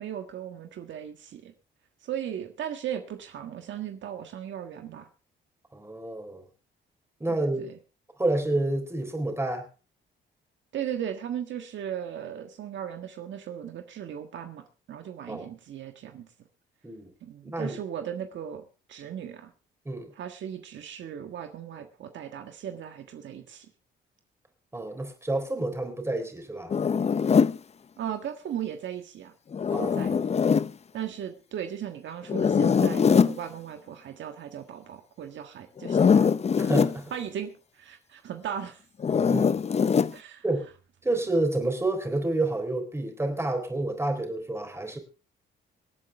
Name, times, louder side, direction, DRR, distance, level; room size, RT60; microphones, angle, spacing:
voice 1, 0.0-1.5 2.0-5.1 7.3-7.8 10.7-16.3 17.2-18.6 18.9-19.5 20.1-23.7 28.0-29.3 29.8-30.1 30.9-36.3 37.1-38.8 40.1-40.4, right 9 dB, 70° right, 6 dB, 1.5 m, -37 dB
voice 2, 5.7-6.4 7.2-7.7 8.2-9.6 15.3-15.5 16.8-17.1 17.4-17.8 19.9-20.1 24.7-26.7 29.7-30.2 36.6-37.1 39.3-39.6 40.4-40.7 41.0-45.0, right 2 dB, 15° right, 6 dB, 3.7 m, -29 dB
Zipper (clothing), 26.7-27.6 29.5-30.7 32.3-33.4 35.8-37.0 39.0-40.1, left 6 dB, 35° left, 0.6 m, -22 dB
24.5 x 8.9 x 3.5 m, 0.33 s
cardioid pair, 90°, 20 cm